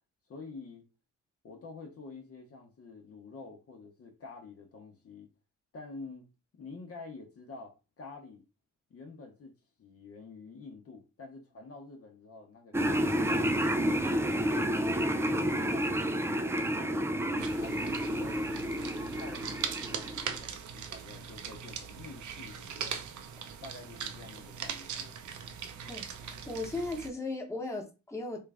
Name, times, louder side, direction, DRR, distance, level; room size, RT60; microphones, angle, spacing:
voice 1, 0.3-0.8 1.4-5.3 5.7-6.3 6.5-8.4 8.9-14.5 15.3-15.9 16.4-18.9 19.2-23.0 23.6-25.2, left 3 dB, 45° left, 0.9 m, -48 dB
sound 1, 12.7-20.4, equal, 10° right, 0.3 m, -30 dB
sound 2, 17.4-27.1, right 7 dB, 70° right, 0.6 m, -40 dB
voice 2, 25.9-28.4, left 2 dB, 10° left, 1.1 m, -37 dB
3.1 x 2.4 x 3.4 m
cardioid pair, 75°, 31 cm